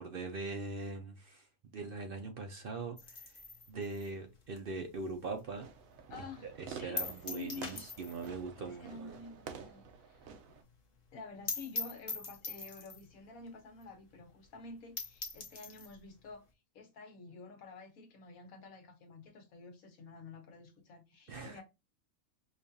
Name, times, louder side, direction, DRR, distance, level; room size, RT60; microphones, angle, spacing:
voice 1, 0.0-1.5 1.7-3.4 3.7-5.7 6.4-9.2 21.3-21.6, right 3 dB, 55° right, 0.6 m, -41 dB
sound 1, 3.0-5.6 5.9-6.0 6.4-6.5 7.0-8.4 8.6-8.7 9.0-9.1 9.5-9.6 9.9-10.0 10.2-10.3 10.7-10.8 11.1-11.2 11.5-13.1 13.8-13.9 14.2-14.3 14.7-14.8 15.0-15.9, left 4 dB, 40° left, 0.8 m, -42 dB
Fireworks, 5.5-10.6, right 6 dB, 75° right, 1.1 m, -50 dB
voice 2, 6.1-6.5 6.7-7.0 7.3-7.8 8.6-10.6 11.1-16.4 16.7-21.6, left 4 dB, 85° left, 1.4 m, -50 dB
5.2 x 2.4 x 2.7 m
omnidirectional pair, 1.4 m